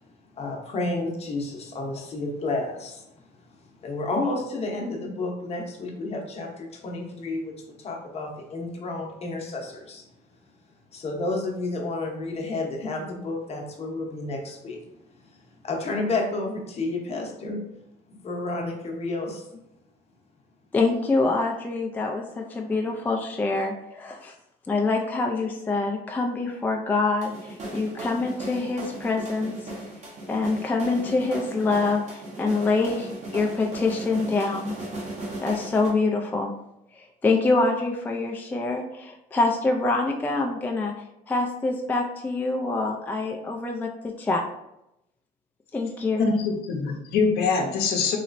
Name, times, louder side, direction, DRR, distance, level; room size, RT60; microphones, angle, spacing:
voice 1, 0.4-3.0 3.8-10.0 10.9-14.8 15.2-15.4 15.6-17.6 18.1-19.4, left 2 dB, 40° left, 1 dB, 0.8 m, -31 dB
voice 2, 20.7-24.3 24.7-29.5 30.3-34.7 35.4-36.5 37.0-40.9 41.3-44.4 45.7-46.2, left 3 dB, 10° left, 1 dB, 0.3 m, -25 dB
sound 1, 27.2-35.9, right 1 dB, 45° right, 1.0 m, -37 dB
voice 3, 46.3-48.2, left 4 dB, 70° left, 1 dB, 0.7 m, -24 dB
3.1 x 2.9 x 2.5 m, 0.83 s
cardioid pair, 110°, 17 cm